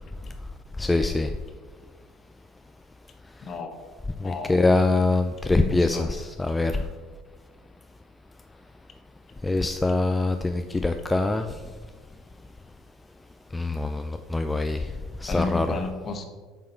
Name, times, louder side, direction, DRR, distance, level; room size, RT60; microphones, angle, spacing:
voice 1, 0.8-1.3 4.2-6.7 9.4-11.5 13.5-14.8 15.2-15.8, left 2 dB, 15° left, 7 dB, 0.4 m, -24 dB
voice 2, 3.4-3.7 4.2-4.6 5.5-6.1 6.8-6.9 15.3-16.3, left 3 dB, 40° left, 5 dB, 1.1 m, -32 dB
7.7 x 3.8 x 4.4 m, 1.4 s
hypercardioid pair, 80°, 0 cm